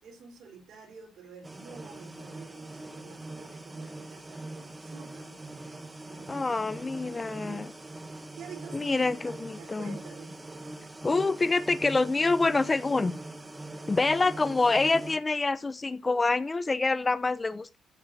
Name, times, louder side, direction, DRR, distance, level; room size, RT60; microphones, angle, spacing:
voice 1, 0.0-7.7 8.4-10.4, right 6 dB, 70° right, 4.1 m, -49 dB
sound 1, 1.4-15.2, right 2 dB, 15° right, 1.3 m, -42 dB
voice 2, 6.3-7.7 8.7-10.0 11.0-13.2 13.9-17.8, left 3 dB, 25° left, 0.7 m, -26 dB
14.0 x 7.8 x 2.8 m
cardioid pair, 90°, 0 cm